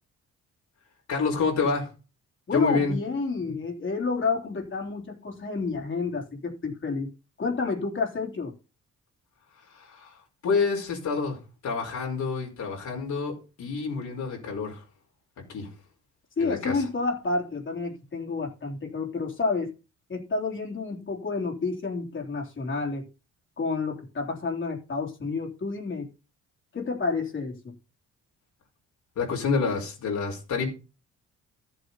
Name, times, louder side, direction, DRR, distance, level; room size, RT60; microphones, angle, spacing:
voice 1, 1.1-1.9 2.5-2.9 9.7-10.2 10.4-14.8 15.5-15.7 16.4-16.8 29.1-30.7, left 4 dB, 70° left, 5.0 m, -28 dB
voice 2, 2.5-7.1 7.4-8.6 16.4-19.7 20.1-23.1 23.6-26.1 26.7-27.8, left 4 dB, 40° left, 3.5 m, -30 dB
13.5 x 8.1 x 4.1 m
cardioid pair, 90°, 30 cm